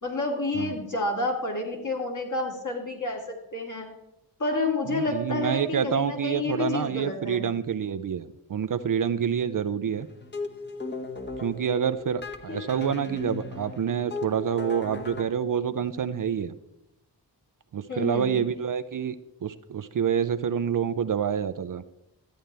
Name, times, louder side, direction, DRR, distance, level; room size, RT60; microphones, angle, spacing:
voice 1, 0.0-3.9 4.4-7.5 12.5-12.6 17.9-18.4, left 2 dB, 45° left, 0 dB, 2.5 m, -29 dB
voice 2, 4.9-10.1 11.4-16.5 17.7-19.1 19.4-21.8, right 8 dB, 50° right, 11 dB, 0.5 m, -27 dB
sound 1, 10.0-15.2, left 3 dB, 25° left, 1.2 m, -37 dB
13.0 x 8.8 x 3.3 m, 0.89 s
cardioid pair, 60°, 42 cm